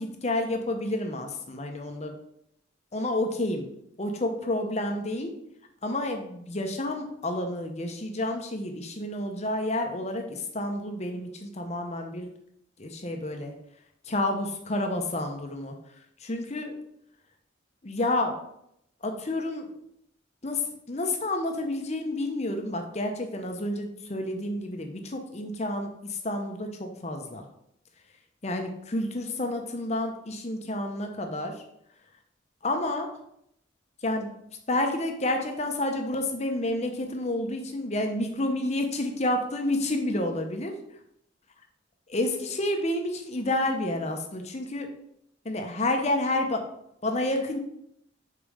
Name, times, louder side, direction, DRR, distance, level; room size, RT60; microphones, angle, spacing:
voice 1, 0.0-2.2 2.9-3.7 4.0-5.3 5.8-12.3 12.8-13.5 14.1-15.8 16.2-16.8 17.8-18.4 19.0-19.7 20.4-27.4 28.4-31.6 32.6-33.1 34.0-34.4 34.7-40.7 42.1-44.9 45.4-46.7 47.0-47.6, left 1 dB, 35° left, 4 dB, 0.8 m, -30 dB
5.3 x 4.3 x 4.9 m, 0.76 s
head